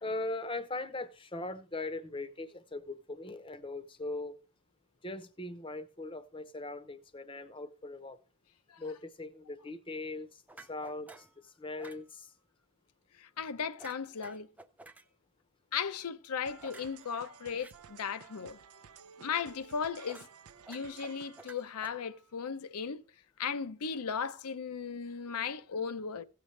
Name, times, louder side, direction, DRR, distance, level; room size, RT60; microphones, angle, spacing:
voice 1, 0.0-4.3 5.0-8.2 8.8-12.3, left 2 dB, 25° left, 0.7 m, -40 dB
sound 1, 10.5-11.4 11.8-12.1 13.8-15.1 16.6-17.7 20.1-20.3 20.6-22.4, right 2 dB, 5° right, 0.4 m, -53 dB
voice 2, 13.2-14.5 15.7-18.6 19.2-20.3 20.7-23.0 23.4-26.2, left 6 dB, 85° left, 0.6 m, -36 dB
sound 2, 16.4-21.7, right 7 dB, 80° right, 0.5 m, -54 dB
16.5 x 6.7 x 3.2 m
head